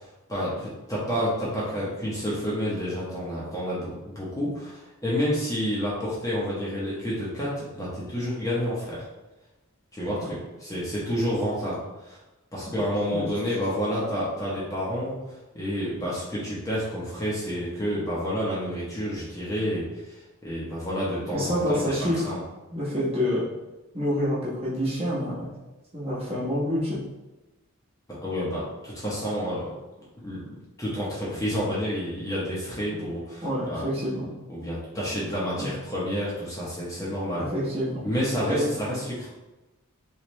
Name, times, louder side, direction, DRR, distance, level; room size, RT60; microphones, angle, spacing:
voice 1, 0.0-9.0 9.9-12.2 12.5-22.4 28.2-29.7 30.2-33.8 34.5-37.5 38.0-39.3, equal, 15° left, -7 dB, 0.8 m, -29 dB
voice 2, 21.3-22.3 22.7-23.4 23.9-25.5 25.9-27.0 32.9-33.1 33.4-34.3 35.6-35.7 37.3-38.0 38.5-38.7, equal, 30° right, -8 dB, 1.2 m, -27 dB
3.1 x 3.1 x 3.1 m, 1.1 s
head